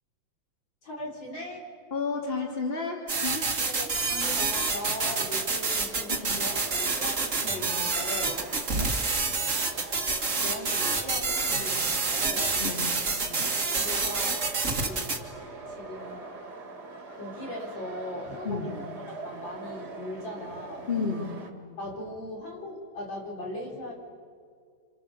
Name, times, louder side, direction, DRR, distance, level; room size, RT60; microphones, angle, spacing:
voice 1, 0.8-1.7 3.8-8.5 10.4-12.6 13.8-14.4 14.8-15.2 15.7-16.2 17.2-20.9 21.8-23.9, left 1 dB, 70° left, -1 dB, 5.6 m, -39 dB
voice 2, 1.9-3.5 6.2-6.4 8.7-8.9 12.6-13.0 18.4-18.7 20.9-21.3, left 4 dB, 30° left, 0 dB, 3.1 m, -31 dB
sound 1, 3.1-15.2, right 4 dB, 40° right, 2.2 m, -28 dB
sound 2, 4.9-21.5, right 3 dB, 55° right, 2.7 m, -43 dB
29.5 x 27.5 x 7.0 m, 2.1 s
omnidirectional pair, 2.1 m